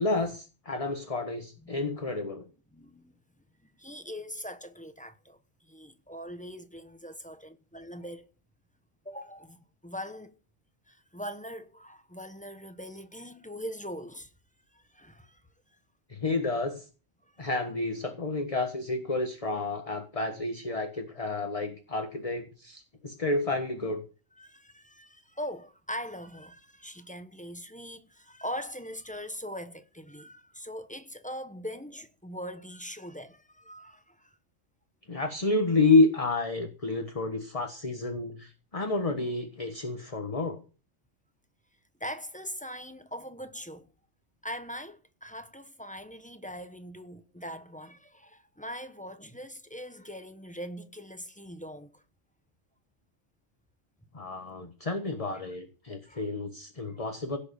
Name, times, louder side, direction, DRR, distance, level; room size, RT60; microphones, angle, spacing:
voice 1, 0.0-2.4 16.1-16.9 17.4-24.0 35.1-40.6 54.1-57.4, left 3 dB, 30° left, 1.4 m, -29 dB
voice 2, 2.7-3.1 3.8-8.3 9.0-10.4 10.9-14.3 14.7-15.4 17.2-17.4 24.4-34.4 42.0-43.9 44.4-52.0 55.4-55.6 56.1-56.2 56.9-57.0, equal, 5° left, 0.9 m, -41 dB
16.5 x 6.8 x 7.1 m
omnidirectional pair, 1.3 m